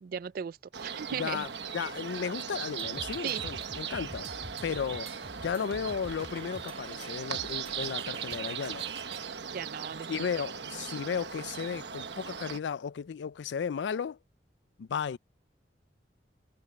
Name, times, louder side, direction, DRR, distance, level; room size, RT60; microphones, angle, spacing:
voice 1, 0.0-1.5 3.2-3.4 9.5-10.3, right 8 dB, 55° right, 0.3 m, -37 dB
sound 1, 0.7-12.6, right 7 dB, 75° right, 1.2 m, -38 dB
voice 2, 1.1-1.5 1.7-4.3 4.6-5.1 5.4-8.8 10.1-14.2 14.8-15.2, left 6 dB, 85° left, 0.4 m, -34 dB
sound 2, 2.8-9.3, right 2 dB, 40° right, 2.6 m, -48 dB
head